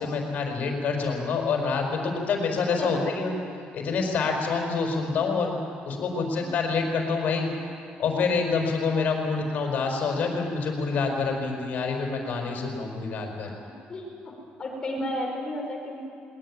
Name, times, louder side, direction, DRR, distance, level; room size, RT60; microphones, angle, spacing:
voice 1, 0.0-3.3 3.7-5.5 5.9-7.5 8.0-13.5, left 4 dB, 55° left, 2 dB, 5.4 m, -27 dB
voice 2, 13.9-14.3 14.6-16.0, left 1 dB, 25° left, 1 dB, 4.9 m, -32 dB
21.0 x 20.0 x 10.0 m, 2.4 s
cardioid pair, 145°, 3 cm